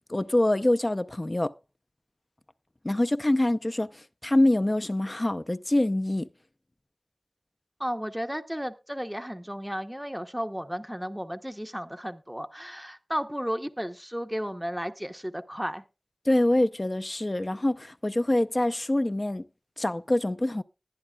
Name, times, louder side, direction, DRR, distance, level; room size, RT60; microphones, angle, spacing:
voice 1, 0.1-1.5 2.8-6.3 16.3-19.4 19.8-20.6, left 1 dB, 35° left, 0.6 m, -25 dB
voice 2, 7.8-15.8, equal, 5° right, 0.8 m, -33 dB
20.0 x 10.0 x 2.3 m
wide cardioid pair, 65°, 0 cm